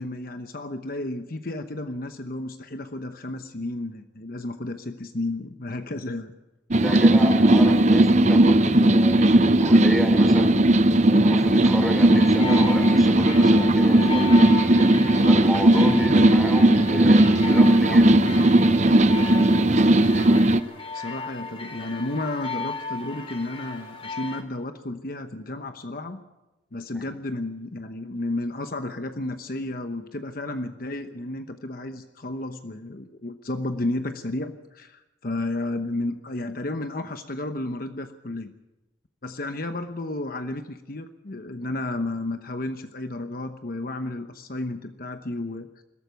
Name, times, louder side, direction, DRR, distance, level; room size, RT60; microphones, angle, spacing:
voice 1, 0.0-6.3 15.7-16.1 20.9-26.2 26.7-38.5 39.2-45.7, left 2 dB, 50° left, 8 dB, 1.0 m, -32 dB
sound 1, 6.7-20.6, right 1 dB, 40° right, 0.7 m, -17 dB
voice 2, 6.8-10.6 11.1-14.4 15.2-18.2 26.9-27.1, equal, ahead, 5 dB, 3.4 m, -32 dB
sound 2, 12.1-24.4, left 3 dB, 30° left, 3.0 m, -36 dB
21.5 x 13.0 x 9.3 m, 1.0 s
head